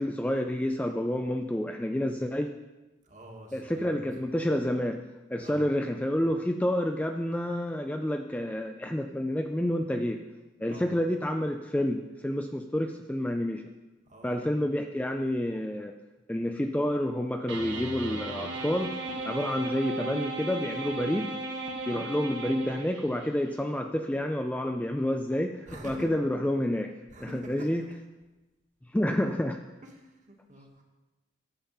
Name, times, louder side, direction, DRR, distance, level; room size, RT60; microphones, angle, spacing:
voice 1, 0.0-2.5 3.5-5.0 5.3-10.2 10.6-13.6 14.2-15.9 16.3-18.9 19.2-21.3 21.9-27.8 28.9-29.6, left 1 dB, 10° left, 5 dB, 0.3 m, -29 dB
voice 2, 3.1-4.0 5.4-5.6 10.7-10.9 14.1-14.6 19.4-19.6 25.7-26.1 27.1-27.7 29.8-30.8, right 1 dB, 40° right, 0 dB, 1.7 m, -47 dB
sound 1, 17.5-23.3, right 2 dB, 75° right, 1.4 m, -36 dB
10.5 x 7.3 x 5.7 m, 1.1 s
head